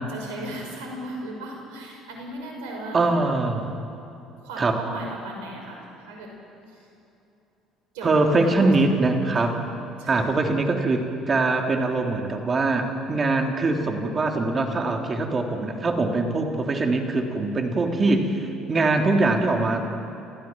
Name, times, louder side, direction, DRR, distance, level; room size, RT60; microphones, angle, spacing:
voice 1, 0.1-3.1 4.4-6.3 7.9-8.1 8.4-9.0 10.0-10.4, right 1 dB, 80° right, 0 dB, 5.7 m, -36 dB
voice 2, 2.9-3.7 4.6-4.8 8.0-9.6 10.1-19.8, right 3 dB, 35° right, 3 dB, 3.3 m, -23 dB
30.0 x 14.5 x 7.6 m, 2.8 s
hypercardioid pair, 65°, 0 cm